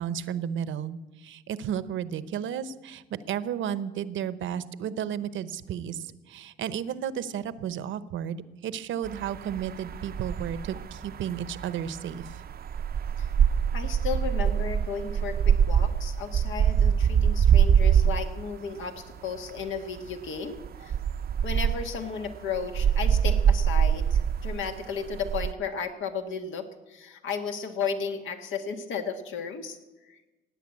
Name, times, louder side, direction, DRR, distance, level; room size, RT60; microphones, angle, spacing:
voice 1, 0.0-12.4, right 9 dB, 75° right, 15 dB, 0.9 m, -33 dB
sound 1, 9.0-18.5 18.8-18.9 19.4-19.7 20.0-20.1 20.6-25.5, right 8 dB, 50° right, 0.6 m, -24 dB
voice 2, 13.7-20.9 21.4-29.8 30.1-30.2, left 6 dB, 80° left, 6 dB, 1.8 m, -34 dB
17.0 x 9.3 x 8.5 m, 1.1 s
cardioid pair, 90°, 20 cm